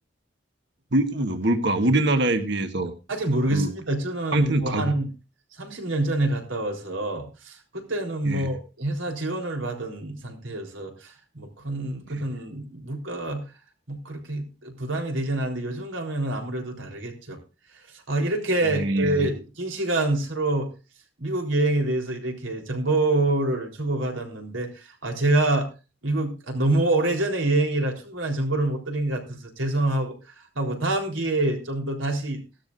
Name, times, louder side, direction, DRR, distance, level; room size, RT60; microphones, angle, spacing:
voice 1, 0.9-2.9 3.5-3.7 4.3-4.9 8.3-8.4 18.7-19.3, right 2 dB, 60° right, 8 dB, 1.4 m, -23 dB
voice 2, 3.1-5.1 5.6-13.4 13.9-17.4 17.7-20.7 21.2-25.7 26.0-32.4, right 2 dB, 85° right, 2 dB, 3.8 m, -26 dB
17.0 x 13.0 x 2.6 m, 0.30 s
head